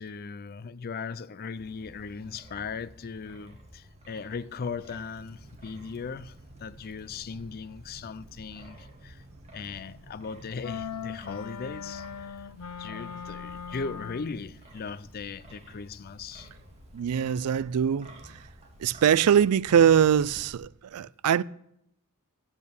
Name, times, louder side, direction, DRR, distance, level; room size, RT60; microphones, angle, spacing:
voice 1, 0.0-9.2 9.5-12.5 12.8-16.5, left 5 dB, 45° left, 0.4 m, -38 dB
Wind, 1.6-20.5, right 1 dB, 30° right, 1.9 m, -52 dB
sound 1, 5.2-11.1, right 2 dB, 45° right, 1.4 m, -53 dB
sound 2, 10.6-14.5, left 7 dB, 90° left, 0.7 m, -39 dB
voice 2, 16.9-18.4 18.8-21.4, right 8 dB, 80° right, 0.4 m, -23 dB
10.5 x 8.6 x 6.9 m
head